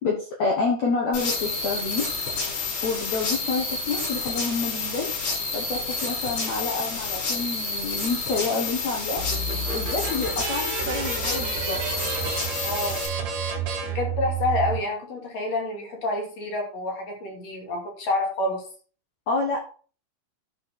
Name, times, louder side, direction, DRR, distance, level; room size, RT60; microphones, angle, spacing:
voice 1, 0.0-2.1 2.8-5.1 5.5-9.2 9.7-11.8 19.3-19.6, left 4 dB, 80° left, 1 dB, 1.5 m, -28 dB
sound 1, 1.1-13.1, left 4 dB, 60° left, 8.1 m, -29 dB
sound 2, 9.2-14.8, right 5 dB, 65° right, 1.7 m, -30 dB
voice 2, 12.6-13.0 13.8-18.6, left 2 dB, 40° left, 1 dB, 3.1 m, -28 dB
12.0 x 6.3 x 4.3 m, 0.40 s
omnidirectional pair, 5.7 m